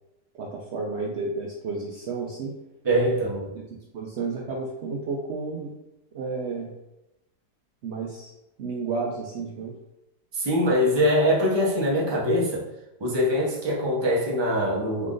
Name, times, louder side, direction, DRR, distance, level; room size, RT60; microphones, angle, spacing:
voice 1, 0.4-2.5 3.5-3.6 3.9-5.7 6.1-6.7 7.8-8.3 8.6-9.7, right 4 dB, 75° right, -1 dB, 0.6 m, -31 dB
voice 2, 2.8-3.5 10.3-12.6 13.0-15.1, equal, 25° right, -4 dB, 0.7 m, -23 dB
4.2 x 2.5 x 3.7 m, 0.91 s
omnidirectional pair, 1.8 m